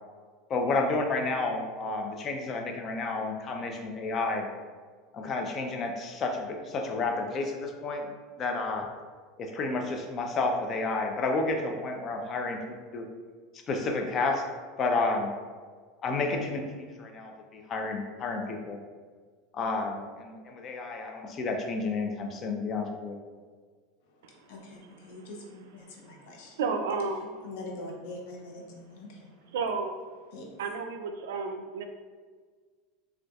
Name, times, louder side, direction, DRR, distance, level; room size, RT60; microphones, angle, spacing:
voice 1, 0.5-4.5 5.1-8.1 8.4-8.9 9.4-12.6 12.9-13.1 13.7-14.4 14.8-15.3 16.0-18.8 19.5-23.2, left 3 dB, 35° left, 4 dB, 0.4 m, -31 dB
voice 2, 24.5-26.6 27.4-29.3 30.3-30.5, left 2 dB, 70° left, 0 dB, 0.7 m, -43 dB
voice 3, 26.6-27.3 29.5-30.0 30.6-31.8, right 4 dB, 90° right, 6 dB, 0.3 m, -31 dB
3.9 x 2.3 x 2.3 m, 1.5 s
supercardioid pair, 125°, 0 cm